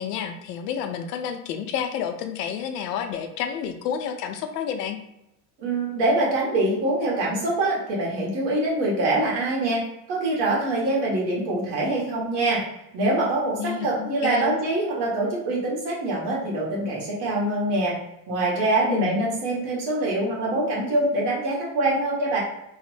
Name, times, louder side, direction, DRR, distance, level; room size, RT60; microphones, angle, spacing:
voice 1, 0.0-5.0 13.6-14.5 18.9-19.2, left 8 dB, 85° left, 7 dB, 0.6 m, -30 dB
voice 2, 5.6-9.8 10.1-12.6 12.9-17.9 18.3-22.4, right 2 dB, 55° right, -4 dB, 1.4 m, -24 dB
3.1 x 2.0 x 3.1 m, 0.85 s
supercardioid pair, 125°, 48 cm